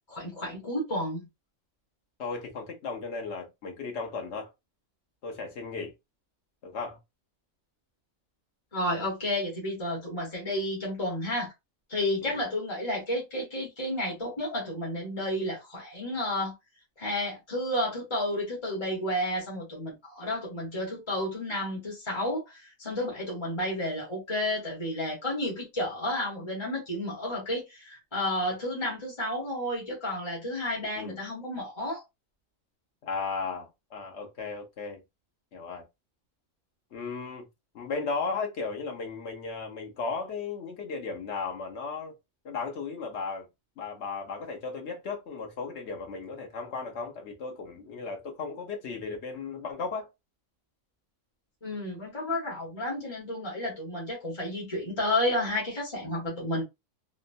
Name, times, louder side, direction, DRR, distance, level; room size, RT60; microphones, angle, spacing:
voice 1, 0.1-1.2 8.7-11.5 11.9-16.5 17.0-32.0 51.6-56.6, left 1 dB, 25° left, 1.0 m, -31 dB
voice 2, 2.2-4.5 5.2-5.9 6.6-7.0 12.2-12.4 30.9-31.2 33.0-35.0 35.5-35.9 36.9-37.5 37.7-42.1 42.4-43.5 43.8-50.1, left 4 dB, 60° left, 1.1 m, -35 dB
3.3 x 2.0 x 2.5 m
omnidirectional pair, 1.4 m